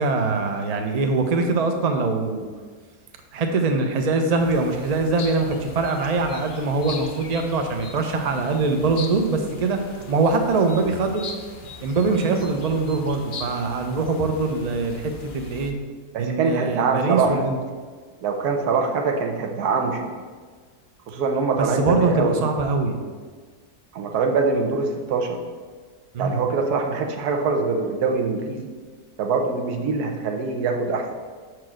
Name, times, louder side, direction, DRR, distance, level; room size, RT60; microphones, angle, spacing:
voice 1, 0.0-2.5 3.3-9.8 10.1-11.2 11.8-15.0 15.3-15.7 16.2-17.6 21.6-23.0 26.1-26.4, right 3 dB, 50° right, 5 dB, 0.5 m, -23 dB
sound 1, 4.4-15.7, left 4 dB, 55° left, 0.6 m, -40 dB
voice 2, 16.1-17.4 18.2-20.1 21.1-22.4 23.9-25.4 26.2-28.7 29.2-31.1, right 4 dB, 80° right, 3 dB, 1.4 m, -23 dB
5.9 x 4.7 x 6.2 m, 1.5 s
omnidirectional pair, 1.6 m